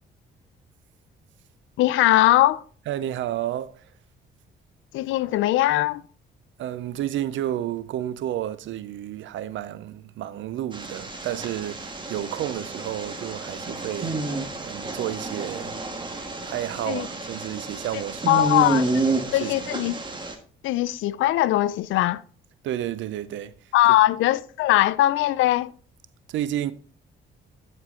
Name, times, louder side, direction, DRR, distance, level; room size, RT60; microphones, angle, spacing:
voice 1, 1.8-2.6 4.9-6.0 16.9-17.1 18.3-18.8 19.3-19.9 20.6-22.2 23.7-25.7, left 15 dB, 80° left, 0.4 m, -20 dB
voice 2, 2.9-3.8 6.6-15.8 16.4-18.7 19.0-19.6 22.6-23.5 26.3-26.7, right 12 dB, 75° right, 0.5 m, -31 dB
sound 1, 10.7-20.3, right 3 dB, 25° right, 1.4 m, -30 dB
11.0 x 4.6 x 3.7 m
cardioid pair, 90°, 20 cm